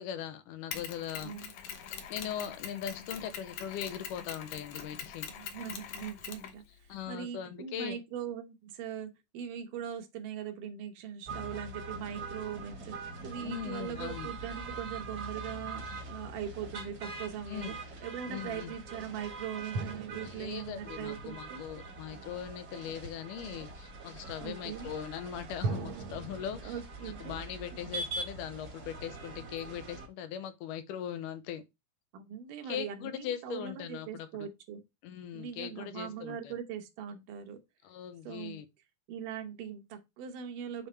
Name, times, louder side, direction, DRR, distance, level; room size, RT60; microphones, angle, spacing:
voice 1, 0.0-1.3 2.1-5.3 6.9-8.0 13.4-14.3 17.5-17.8 18.3-18.7 20.3-31.6 32.6-34.5 35.0-36.5 37.8-38.7, left 9 dB, 90° left, 2.3 m, -40 dB
Mechanisms, 0.7-7.0, left 8 dB, 70° left, 2.2 m, -43 dB
voice 2, 1.2-1.5 5.3-17.8 18.0-21.6 24.4-24.9 26.6-27.4 27.8-27.9 32.1-34.8 35.3-37.6 38.2-38.6 39.1-40.9, right 8 dB, 80° right, 2.6 m, -41 dB
sound 1, 11.2-30.1, right 3 dB, 45° right, 1.2 m, -43 dB
sound 2, 15.5-16.9 19.7-22.3 25.6-26.6, right 3 dB, 65° right, 1.5 m, -40 dB
7.2 x 3.5 x 4.1 m
omnidirectional pair, 3.7 m